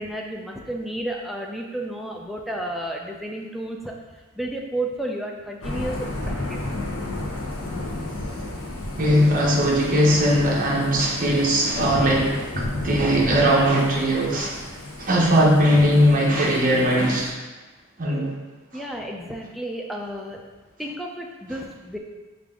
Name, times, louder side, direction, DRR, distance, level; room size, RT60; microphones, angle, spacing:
voice 1, 0.0-6.8 18.7-20.4 20.8-22.0, right 1 dB, ahead, 0 dB, 0.3 m, -32 dB
Thunder / Rain, 5.6-17.3, left 1 dB, 65° left, 0.7 m, -32 dB
voice 2, 9.0-17.4 18.0-18.3, equal, 40° right, -3 dB, 0.8 m, -20 dB
5.0 x 2.4 x 3.6 m, 1.3 s
head